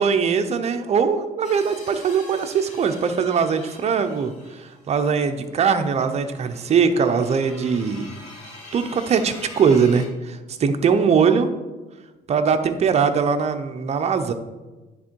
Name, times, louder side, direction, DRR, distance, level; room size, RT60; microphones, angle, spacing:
voice 1, 0.0-8.1 8.7-11.5 12.3-14.3, right 6 dB, 40° right, 8 dB, 0.7 m, -21 dB
sound 1, 1.4-10.1, left 1 dB, 45° left, 2.3 m, -44 dB
10.0 x 3.7 x 4.5 m, 1.2 s
cardioid pair, 110°, 17 cm